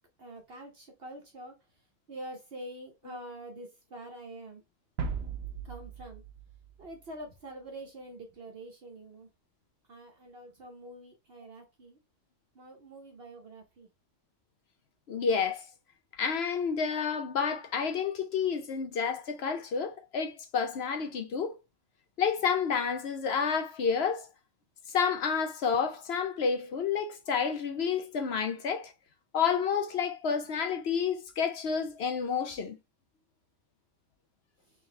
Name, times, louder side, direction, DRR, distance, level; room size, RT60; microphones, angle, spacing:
voice 1, 0.2-1.5 2.1-4.6 5.6-6.2 6.8-9.3 9.9-12.0 12.5-13.9, right 1 dB, 50° right, 1.0 m, -46 dB
sound 1, 5.0-7.5, right 5 dB, 80° right, 1.2 m, -38 dB
voice 2, 15.1-15.7 16.2-21.6 22.2-24.3 24.9-28.9 29.3-32.8, left 6 dB, 60° left, 0.8 m, -30 dB
3.9 x 3.1 x 3.2 m
omnidirectional pair, 1.4 m